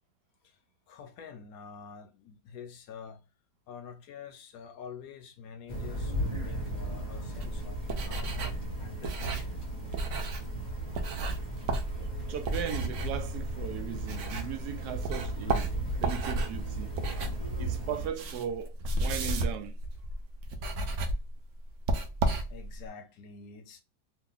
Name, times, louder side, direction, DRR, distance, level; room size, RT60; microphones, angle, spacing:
voice 1, 0.9-3.3 3.7-8.4 8.8-9.7 22.5-23.8, left 6 dB, 70° left, 1.0 m, -47 dB
sound 1, 5.7-18.1, right 1 dB, 15° right, 1.2 m, -36 dB
sound 2, 7.4-14.7 15.0-22.9, right 2 dB, 60° right, 0.8 m, -33 dB
voice 2, 12.3-16.9 17.6-19.8, right 9 dB, 80° right, 1.1 m, -37 dB
3.0 x 2.4 x 3.7 m
omnidirectional pair, 1.7 m